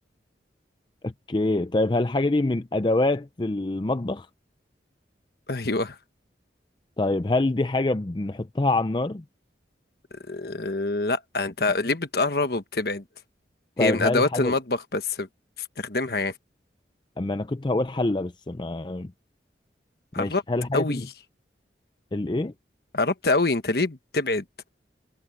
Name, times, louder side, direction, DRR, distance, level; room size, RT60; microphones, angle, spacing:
voice 1, 1.0-4.3 7.0-9.2 13.8-14.5 17.2-19.1 20.2-21.0 22.1-22.5, left 2 dB, 25° left, 0.5 m, -25 dB
voice 2, 5.5-6.0 10.3-13.0 13.8-15.3 15.6-16.3 20.1-20.4 20.7-21.1 22.9-24.4, left 3 dB, 60° left, 1.3 m, -25 dB
head